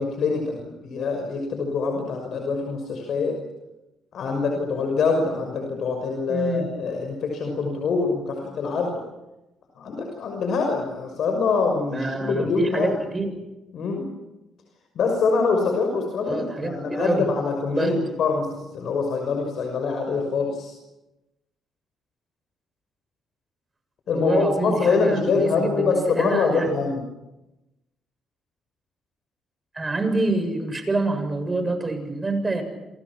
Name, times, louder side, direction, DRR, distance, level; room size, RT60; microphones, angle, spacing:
voice 1, 0.0-3.4 4.1-9.0 9.8-13.0 13.7-14.1 14.9-20.7 24.1-27.0, left 4 dB, 65° left, 3 dB, 6.1 m, -24 dB
voice 2, 6.3-6.7 11.9-13.3 16.3-17.3 17.7-18.0 24.1-26.7 29.7-32.6, right 2 dB, 25° right, 7 dB, 7.6 m, -26 dB
28.5 x 28.0 x 6.3 m, 0.99 s
cardioid pair, 90°, 0 cm